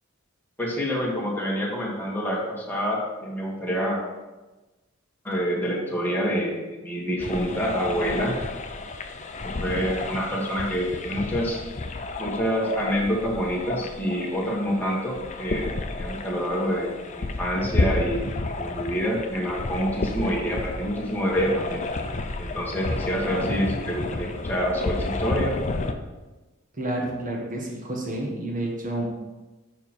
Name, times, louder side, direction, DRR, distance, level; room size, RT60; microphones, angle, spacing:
voice 1, 0.6-4.0 5.2-8.4 9.6-11.6 12.2-18.3 18.5-21.8 22.4-25.5, equal, 10° left, -4 dB, 1.6 m, -27 dB
sound 1, 7.2-25.9, left 2 dB, 35° left, 0.5 m, -31 dB
voice 2, 26.7-29.1, right 1 dB, 40° right, -1 dB, 1.6 m, -30 dB
7.1 x 5.7 x 4.4 m, 1.1 s
head